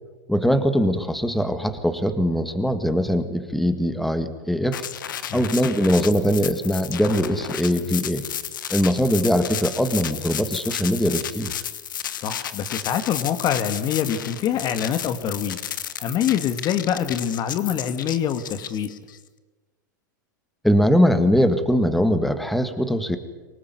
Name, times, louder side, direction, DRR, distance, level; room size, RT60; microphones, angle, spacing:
voice 1, 0.3-4.9 5.3-8.2 8.7-11.5 20.6-23.2, equal, ahead, 9 dB, 1.8 m, -21 dB
sound 1, 4.7-19.2, left 10 dB, 80° left, 1.4 m, -33 dB
voice 2, 12.2-15.6 16.0-18.9, left 9 dB, 40° left, 10 dB, 1.9 m, -25 dB
25.0 x 18.5 x 9.6 m, 1.3 s
hypercardioid pair, 110°, 11 cm